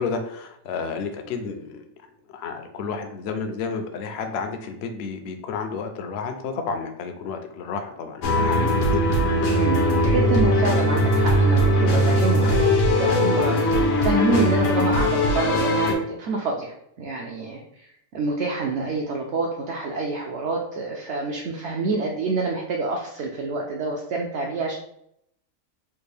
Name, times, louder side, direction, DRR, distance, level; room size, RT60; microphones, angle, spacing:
voice 1, 0.0-1.9 2.3-9.1, left 5 dB, 65° left, 6 dB, 0.7 m, -31 dB
sound 1, 8.2-15.9, equal, 80° left, 1.1 m, -20 dB
voice 2, 9.5-24.8, right 3 dB, 65° right, -1 dB, 0.8 m, -27 dB
3.5 x 2.4 x 3.3 m, 0.73 s
omnidirectional pair, 1.4 m